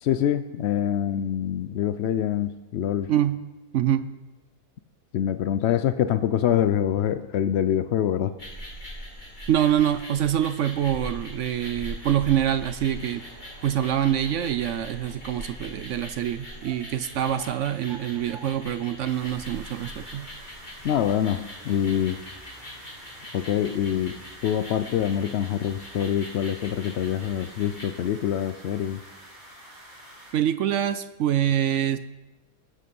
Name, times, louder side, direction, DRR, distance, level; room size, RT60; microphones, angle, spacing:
voice 1, 0.0-3.1 5.1-8.3 20.8-22.2 23.3-24.1 24.4-29.0, left 10 dB, 75° left, 12 dB, 0.6 m, -25 dB
voice 2, 3.1-3.4 3.7-4.1 9.5-13.2 13.6-20.3 30.3-32.0, right 10 dB, 70° right, 12 dB, 0.7 m, -25 dB
sound 1, 8.4-27.9, equal, 30° left, 3.0 m, -42 dB
sound 2, 19.1-30.3, right 1 dB, 40° right, 6.9 m, -48 dB
20.5 x 8.4 x 5.3 m, 1.1 s
omnidirectional pair, 1.7 m